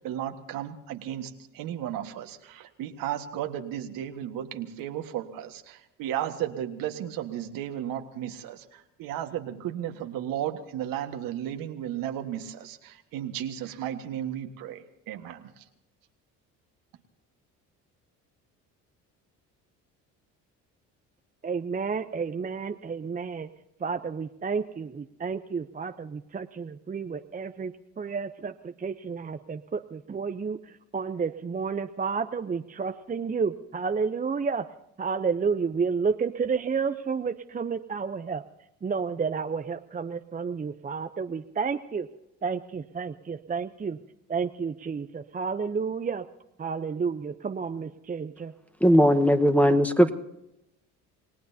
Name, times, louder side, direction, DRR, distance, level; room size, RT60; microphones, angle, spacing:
voice 1, 0.0-15.6, right 11 dB, 75° right, 6 dB, 1.6 m, -34 dB
voice 2, 21.4-23.5 23.8-34.7 35.0-38.4 38.8-42.1 42.4-44.0 44.3-46.3 46.6-48.5, right 5 dB, 25° right, 8 dB, 0.7 m, -31 dB
voice 3, 48.8-50.1, equal, 5° left, 6 dB, 1.2 m, -19 dB
28.0 x 18.5 x 2.8 m, 0.85 s
supercardioid pair, 80°, 34 cm